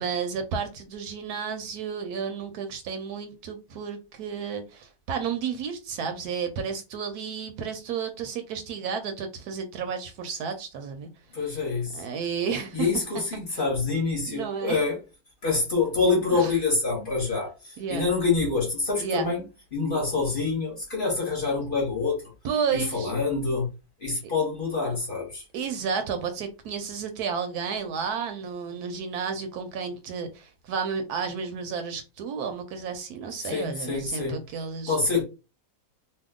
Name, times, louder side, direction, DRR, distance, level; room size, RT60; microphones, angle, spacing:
voice 1, 0.0-11.1 11.9-12.9 13.5-13.6 14.3-14.8 16.3-16.5 17.8-18.1 19.0-19.3 22.4-23.1 25.5-35.0, right 6 dB, 75° right, 1.0 m, -32 dB
voice 2, 11.3-12.0 12.7-15.0 15.4-19.4 19.7-22.3 22.7-23.7 24.0-25.4 33.4-34.4 34.9-35.2, left 4 dB, 35° left, 1.0 m, -26 dB
2.8 x 2.3 x 3.6 m
omnidirectional pair, 1.8 m